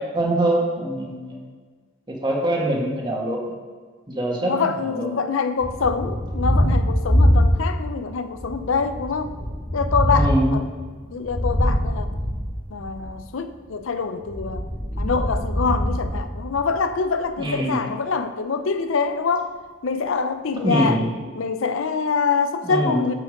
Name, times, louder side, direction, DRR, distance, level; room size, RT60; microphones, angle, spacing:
voice 1, 0.1-1.4 2.1-3.5 4.1-4.5 4.8-5.1 10.1-10.6 17.4-17.8 20.6-21.1 22.6-23.1, right 1 dB, 20° right, -1 dB, 1.5 m, -23 dB
voice 2, 4.4-9.3 9.7-10.6 11.1-12.2 12.7-14.7 15.0-19.5 19.8-21.0 21.4-23.1, left 5 dB, 70° left, 9 dB, 0.5 m, -25 dB
Thunder, 5.6-8.0 8.4-13.2 14.2-16.9, equal, 10° left, 0.6 m, -23 dB
7.4 x 6.5 x 5.2 m, 1.5 s
head